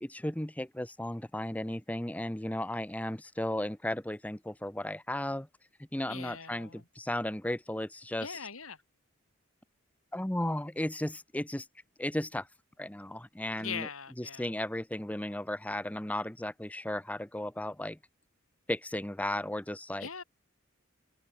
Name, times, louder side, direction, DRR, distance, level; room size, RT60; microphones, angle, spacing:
voice 1, 0.0-5.5 5.9-8.4 10.1-11.7 12.0-12.5 12.8-13.9 14.2-18.0 18.7-20.1, left 1 dB, 5° left, 0.7 m, -35 dB
voice 2, 6.1-6.9 8.2-8.8 13.6-14.5 20.0-20.2, left 6 dB, 85° left, 4.0 m, -41 dB
head